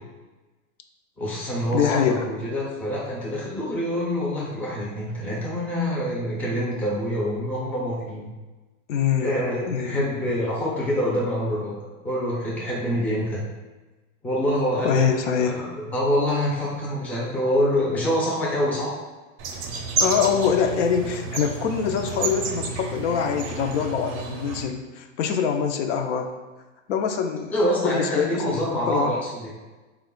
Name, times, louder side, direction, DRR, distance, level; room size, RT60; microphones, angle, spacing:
voice 1, 1.2-8.3 9.2-11.8 12.0-13.4 14.2-18.9 27.5-29.5, equal, 5° left, -6 dB, 0.4 m, -26 dB
voice 2, 1.7-2.3 8.9-9.3 9.7-10.0 14.8-15.6 20.0-26.3 26.9-27.5 27.8-29.2, left 7 dB, 65° left, 5 dB, 0.5 m, -24 dB
sound 1, 19.4-24.6, right 5 dB, 45° right, 0.5 m, -30 dB
3.4 x 2.3 x 3.7 m, 1.2 s
supercardioid pair, 140°, 39 cm